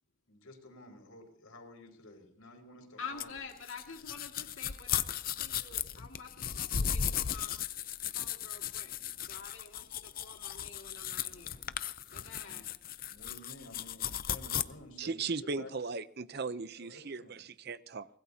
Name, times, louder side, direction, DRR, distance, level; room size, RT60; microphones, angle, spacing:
voice 1, 0.3-3.4 12.4-12.6 13.1-15.7 16.8-17.4, left 2 dB, 85° left, 3 dB, 5.0 m, -52 dB
voice 2, 3.0-5.0 5.3-7.5 8.0-9.0 9.3-11.6 12.1-12.6, left 5 dB, 65° left, 1 dB, 2.2 m, -48 dB
sound 1, 3.2-14.6, left 9 dB, 40° left, 0.6 m, -36 dB
voice 3, 15.0-18.1, right 4 dB, 45° right, 14 dB, 0.6 m, -37 dB
24.5 x 20.0 x 2.8 m, 0.66 s
head